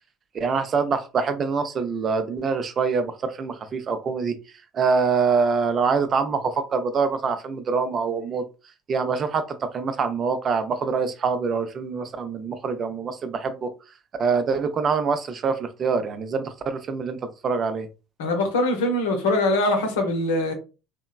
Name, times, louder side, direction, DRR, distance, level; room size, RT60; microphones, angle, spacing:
voice 1, 0.3-4.4 4.7-8.5 8.9-13.7 14.2-17.9, right 5 dB, 45° right, 0.5 m, -25 dB
voice 2, 18.2-20.5, left 1 dB, 80° left, 0.7 m, -22 dB
2.9 x 2.1 x 2.3 m
hypercardioid pair, 65°, 0 cm